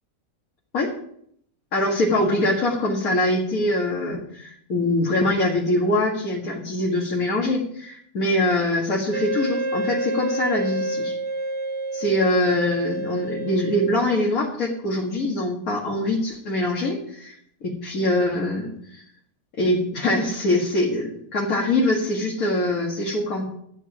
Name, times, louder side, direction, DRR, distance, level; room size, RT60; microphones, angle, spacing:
voice 1, 1.7-11.1 11.9-17.4 17.6-19.0 19.6-23.4, left 1 dB, 70° left, -3 dB, 2.3 m, -23 dB
Wind instrument woodwind instrument, 9.1-14.2, right 2 dB, 45° right, 0.3 m, -29 dB
13.0 x 9.6 x 4.9 m, 0.68 s
omnidirectional pair, 1.5 m